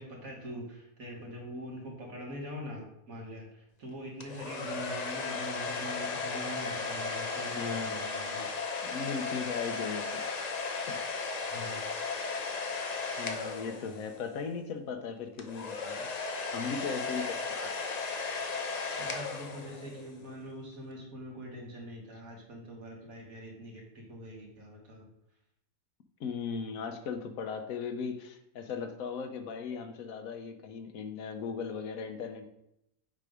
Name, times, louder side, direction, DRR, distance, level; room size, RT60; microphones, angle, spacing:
voice 1, 0.0-8.5 11.5-11.8 17.5-17.8 19.0-25.1, equal, 80° right, -2 dB, 2.1 m, -43 dB
sound 1, 4.2-14.3 15.4-20.1, left 4 dB, 50° left, 0.5 m, -36 dB
voice 2, 7.5-8.0 8.8-10.2 10.9-11.1 13.2-16.2 16.5-17.4 26.2-32.5, left 5 dB, 75° left, 7 dB, 1.2 m, -37 dB
7.5 x 3.3 x 5.0 m, 0.80 s
omnidirectional pair, 1.5 m